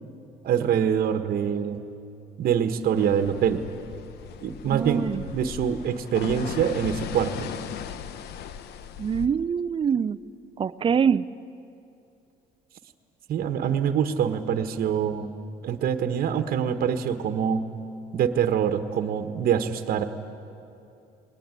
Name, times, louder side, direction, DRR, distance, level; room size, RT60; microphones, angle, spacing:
voice 1, 0.4-1.8 2.4-3.6 4.4-5.1 5.3-7.5 13.3-15.3 15.6-17.7 18.1-20.0, right 8 dB, 60° right, 8 dB, 1.3 m, -25 dB
sound 1, 3.0-9.3, left 9 dB, 75° left, 0.9 m, -38 dB
voice 2, 4.6-5.2 9.0-10.2 10.6-11.2, right 7 dB, 30° right, 16 dB, 0.6 m, -24 dB
20.5 x 19.0 x 9.7 m, 2.6 s
cardioid pair, 110°, 17 cm